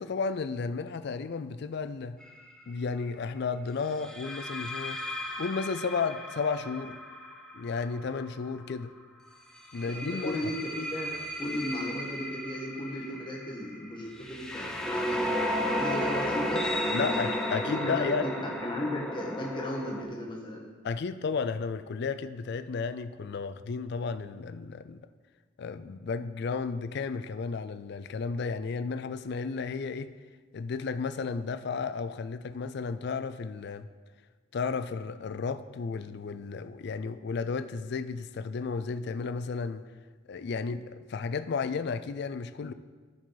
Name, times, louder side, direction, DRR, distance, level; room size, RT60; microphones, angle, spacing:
voice 1, 0.0-2.2 2.7-5.0 5.4-7.0 7.5-8.9 9.7-10.5 16.9-18.3 20.8-25.0 25.6-30.1 30.5-33.9 34.5-39.9 40.3-42.7, left 5 dB, 55° left, 12 dB, 0.4 m, -33 dB
sound 1, 2.2-2.5 4.0-8.8 9.6-20.0, equal, 5° left, 0.7 m, -34 dB
voice 2, 9.9-15.3 15.8-17.2 17.6-20.7, left 1 dB, 25° left, -2 dB, 1.4 m, -35 dB
14.0 x 5.0 x 3.9 m, 1.5 s
head